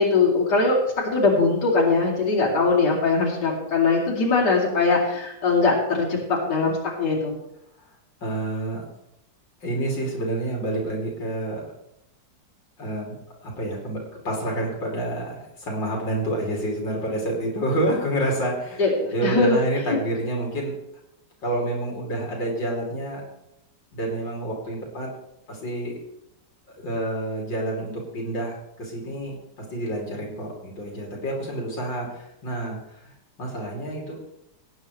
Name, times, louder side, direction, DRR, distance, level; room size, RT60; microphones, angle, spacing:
voice 1, 0.0-7.3 18.8-19.6 19.9-20.0, left 3 dB, 60° left, -4 dB, 3.3 m, -21 dB
voice 2, 8.2-8.8 9.6-11.7 12.8-13.2 13.4-18.9 19.1-20.7 21.4-23.2 23.9-25.1 25.5-25.9 26.8-29.4 29.7-34.2, right 1 dB, 80° left, -2 dB, 3.6 m, -28 dB
18.5 x 9.1 x 3.2 m, 0.83 s
omnidirectional pair, 2.0 m